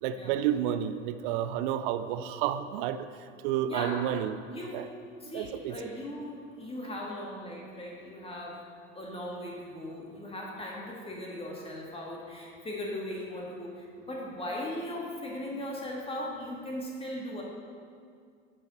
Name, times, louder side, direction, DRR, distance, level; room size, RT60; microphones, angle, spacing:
voice 1, 0.0-4.4 4.7-4.9 5.2-5.8, right 10 dB, 45° right, 11 dB, 0.5 m, -31 dB
voice 2, 3.6-4.1 4.5-4.8 5.2-8.6 9.0-17.4, left 1 dB, 15° left, -2 dB, 1.8 m, -38 dB
12.0 x 5.6 x 4.3 m, 2.2 s
figure-of-eight pair, 75°, 36 cm